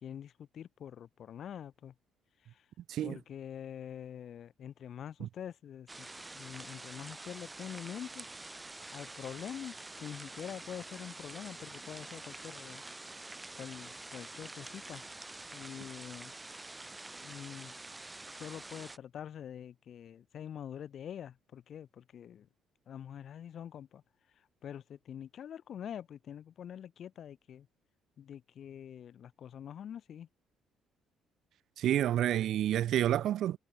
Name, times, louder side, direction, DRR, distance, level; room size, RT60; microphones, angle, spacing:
voice 1, 0.0-1.9 2.5-2.6 3.0-6.1 6.3-8.3 8.9-12.8 13.5-15.1 15.5-16.3 17.2-17.8 18.3-22.5 22.9-24.0 24.6-27.7 28.2-30.3, left 9 dB, 55° left, 2.6 m, -45 dB
sound 1, 5.9-19.0, right 2 dB, 15° right, 4.2 m, -47 dB
voice 2, 31.8-33.6, right 12 dB, 65° right, 0.4 m, -29 dB
cardioid pair, 120°, 0 cm